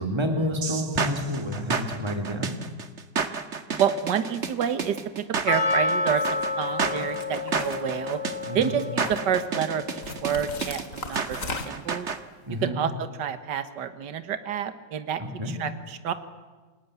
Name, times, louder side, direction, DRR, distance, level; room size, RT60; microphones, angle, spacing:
voice 1, 0.0-2.6 8.4-8.7 12.4-12.8 15.2-15.6, equal, 15° right, 4 dB, 3.1 m, -29 dB
sound 1, 0.6-12.2, right 5 dB, 40° right, 1.6 m, -31 dB
voice 2, 3.8-8.2 8.5-12.1 12.6-16.1, right 8 dB, 70° right, 10 dB, 1.9 m, -29 dB
Percussion, 5.5-9.8 10.1-10.2, left 3 dB, 85° left, 4.6 m, -29 dB
sound 2, 6.1-6.4 7.0-8.4 8.8-9.4 10.0-12.0, left 3 dB, 45° left, 2.5 m, -37 dB
29.0 x 19.0 x 9.4 m, 1.4 s
omnidirectional pair, 2.0 m